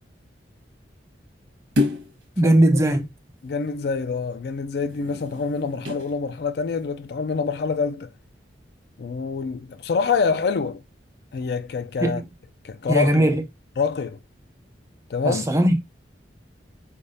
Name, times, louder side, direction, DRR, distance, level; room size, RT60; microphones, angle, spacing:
Objects Falls Table, 1.8-2.2 4.8-6.1 6.7-6.8, left 2 dB, 85° right, 1.2 m, -28 dB
voice 1, 2.4-3.1 12.0-12.3 12.9-13.4 15.2-15.8, right 1 dB, 15° right, 0.6 m, -19 dB
voice 2, 3.4-8.1 9.0-10.8 11.3-12.2 12.6-13.3 13.8-14.2 15.1-15.5, left 5 dB, 60° left, 0.4 m, -26 dB
4.6 x 3.4 x 2.6 m
head